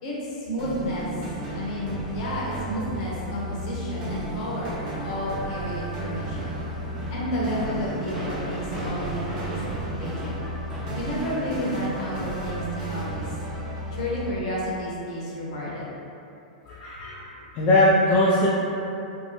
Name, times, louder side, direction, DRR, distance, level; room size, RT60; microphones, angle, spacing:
voice 1, 0.0-1.1 1.5-6.5 7.1-10.5 10.9-13.2 13.9-15.9, equal, 55° left, -6 dB, 0.8 m, -31 dB
sound 1, 0.6-14.3, right 1 dB, 45° right, 1.1 m, -33 dB
sound 2, 6.1-11.3, right 1 dB, 20° right, 0.6 m, -37 dB
voice 2, 16.7-17.3 17.6-18.5, left 1 dB, 40° left, -7 dB, 0.4 m, -20 dB
2.7 x 2.1 x 2.8 m, 2.9 s
hypercardioid pair, 110°, 4 cm